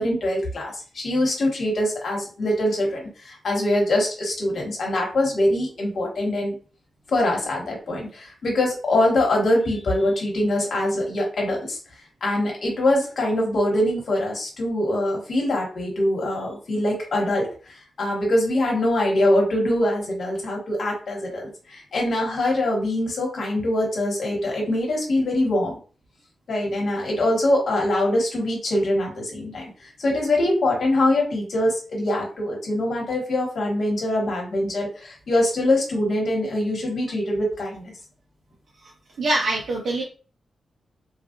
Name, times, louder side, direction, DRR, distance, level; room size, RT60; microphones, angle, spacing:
voice 1, 0.0-6.6 7.1-11.8 12.2-25.7 26.5-37.9, left 1 dB, 60° left, -1 dB, 1.3 m, -23 dB
voice 2, 39.2-40.0, right 2 dB, 75° right, -3 dB, 0.6 m, -23 dB
3.2 x 2.4 x 2.5 m, 0.37 s
wide cardioid pair, 175°, 0 cm